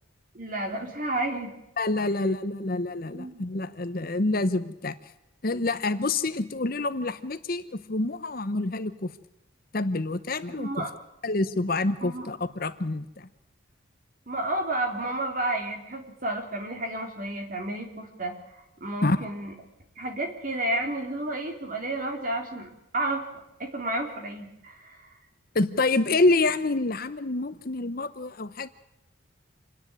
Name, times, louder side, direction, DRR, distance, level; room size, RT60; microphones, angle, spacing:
voice 1, 0.3-1.5 3.1-3.4 10.6-10.9 12.0-12.3 14.3-18.3 18.8-19.5 20.0-23.2 23.6-25.1, right 1 dB, 40° right, 3 dB, 3.5 m, -31 dB
voice 2, 1.8-4.9 5.4-9.1 9.7-10.8 11.2-13.3 19.0-19.2 25.5-28.7, left 2 dB, 45° left, 11 dB, 0.9 m, -27 dB
27.5 x 10.5 x 9.8 m, 0.88 s
head